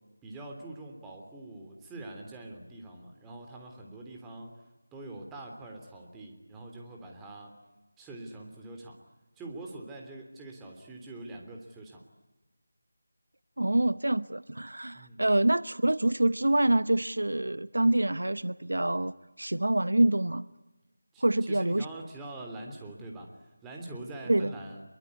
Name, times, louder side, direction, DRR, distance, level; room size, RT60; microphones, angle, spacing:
voice 1, 0.2-4.6 4.9-7.5 8.0-9.0 9.4-12.0 14.9-15.2 21.1-24.8, right 2 dB, 10° right, 0 dB, 3.3 m, -44 dB
voice 2, 13.6-20.5 21.2-21.8 24.3-24.5, right 1 dB, 75° right, 17 dB, 0.9 m, -26 dB
26.5 x 23.0 x 9.7 m, 1.1 s
figure-of-eight pair, 165°, 0 cm